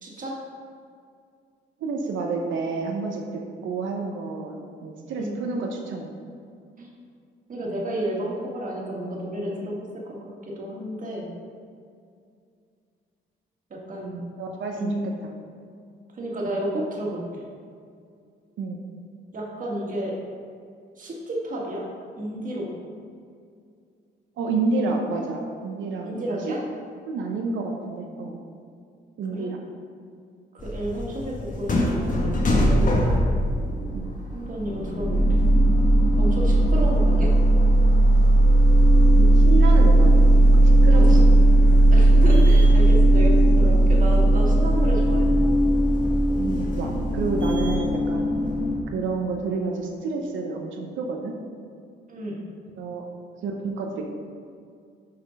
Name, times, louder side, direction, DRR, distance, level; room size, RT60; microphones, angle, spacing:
voice 1, 0.0-0.4 5.2-5.4 6.8-6.9 7.5-9.8 10.2-11.3 13.7-14.2 14.7-15.2 16.2-17.5 19.3-20.1 21.0-21.8 22.2-22.7 26.0-26.6 29.3-29.5 30.5-32.9 34.3-35.4 36.2-37.3 40.9-41.2 41.9-45.3 52.1-52.4, right 1 dB, 40° right, -3 dB, 1.7 m, -31 dB
voice 2, 1.8-6.1 14.4-15.3 18.6-18.8 24.4-26.5 27.1-28.4 29.2-29.6 33.9-34.1 39.1-40.2 40.8-41.5 46.3-48.2 48.9-51.3 52.8-53.0 53.4-54.0, right 3 dB, 75° right, 1 dB, 0.8 m, -29 dB
sound 1, 30.6-48.8, right 1 dB, 40° left, 1.1 m, -17 dB
6.4 x 4.3 x 5.2 m, 2.3 s
cardioid pair, 90°, 20 cm